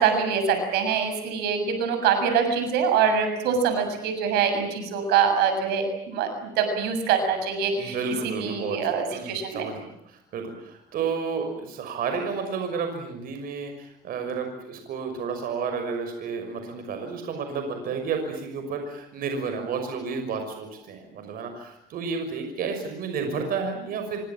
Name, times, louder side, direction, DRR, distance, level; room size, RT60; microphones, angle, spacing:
voice 1, 0.0-8.0 8.4-9.6, right 6 dB, 85° right, 7 dB, 7.1 m, -24 dB
voice 2, 7.8-24.2, right 5 dB, 65° right, 5 dB, 6.1 m, -31 dB
27.5 x 24.5 x 7.4 m, 0.79 s
cardioid pair, 115°, 17 cm